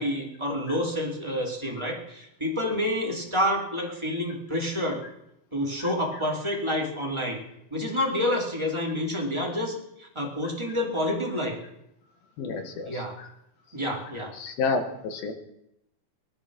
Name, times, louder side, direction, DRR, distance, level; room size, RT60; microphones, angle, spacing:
voice 1, 0.0-5.0 5.5-7.4 7.7-11.6 12.8-13.1 13.7-14.3, left 1 dB, 10° right, -2 dB, 1.9 m, -28 dB
voice 2, 12.4-13.3 14.3-15.3, left 4 dB, 75° left, 6 dB, 3.3 m, -30 dB
19.0 x 12.0 x 6.2 m, 0.81 s
omnidirectional pair, 4.4 m